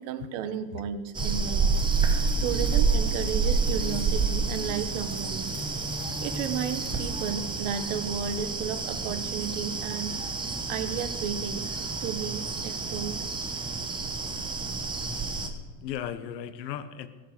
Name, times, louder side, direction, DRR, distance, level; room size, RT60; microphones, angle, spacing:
voice 1, 0.0-1.7 2.4-5.6 6.2-10.2 10.7-11.6 12.0-13.2, right 8 dB, 45° right, 11 dB, 1.2 m, -33 dB
sound 1, 1.1-15.5, right 4 dB, 10° right, 0.8 m, -29 dB
sound 2, 1.7-8.1, left 3 dB, 20° left, 1.2 m, -42 dB
voice 2, 2.2-2.8 15.0-15.5 15.8-17.1, left 10 dB, 80° left, 11 dB, 1.4 m, -37 dB
21.0 x 7.8 x 6.6 m, 1.3 s
supercardioid pair, 160°, 50 cm